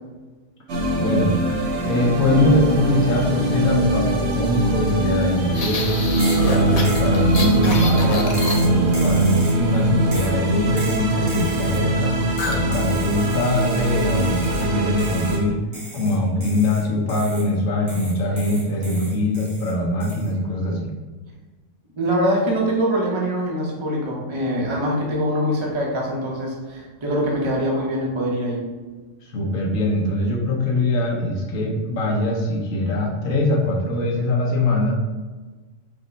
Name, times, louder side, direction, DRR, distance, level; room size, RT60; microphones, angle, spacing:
sound 1, 0.7-15.4, right 1 dB, 60° right, 1.0 m, -22 dB
voice 1, 1.0-1.3 1.8-6.0 6.4-12.1 12.4-15.6 15.9-20.9 29.2-34.9, left 1 dB, 80° left, -1 dB, 1.2 m, -22 dB
sound 2, 5.5-9.0 12.4-12.7 12.9-13.2 13.6-14.0, left 2 dB, 65° left, 0.4 m, -28 dB
sound 3, 6.2-6.5 6.8-7.6 8.3-9.7 10.1-10.4 10.8-11.9 12.4-14.7 15.0-15.4 15.7-17.5 17.9-19.7 20.0-20.3, right 1 dB, 75° right, 1.7 m, -37 dB
voice 2, 22.0-28.6, equal, 25° right, -3 dB, 0.7 m, -23 dB
5.2 x 2.1 x 3.9 m, 1.3 s
omnidirectional pair, 1.4 m